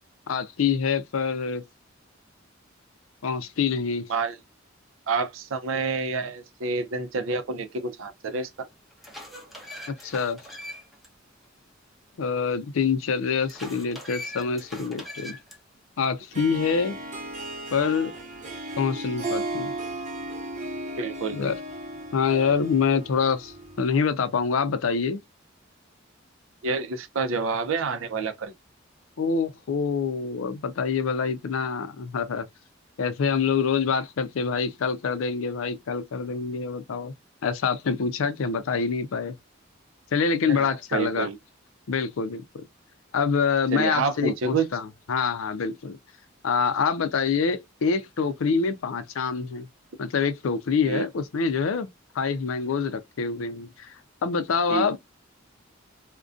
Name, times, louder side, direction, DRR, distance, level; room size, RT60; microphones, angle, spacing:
voice 1, 0.3-1.6 3.2-4.1 9.9-10.4 12.2-15.4 16.0-17.0 17.7-18.1 18.8-19.7 21.3-21.5 22.1-25.2 29.2-32.5 33.0-37.1 37.4-39.3 40.1-41.3 41.9-42.6 43.1-46.0 46.4-49.7 50.0-51.9 52.1-53.9 54.2-55.0, left 5 dB, 85° left, 0.4 m, -26 dB
voice 2, 5.1-8.5 21.0-21.4 26.6-28.5 40.5-41.4 43.7-44.7 50.8-51.1 54.7-55.0, right 4 dB, 75° right, 0.5 m, -28 dB
sound 1, 8.1-8.2 8.7-11.1 11.4-11.5 13.5-15.6, left 1 dB, ahead, 0.6 m, -41 dB
Harp, 16.3-24.0, right 2 dB, 35° right, 0.7 m, -35 dB
2.4 x 2.2 x 2.4 m
head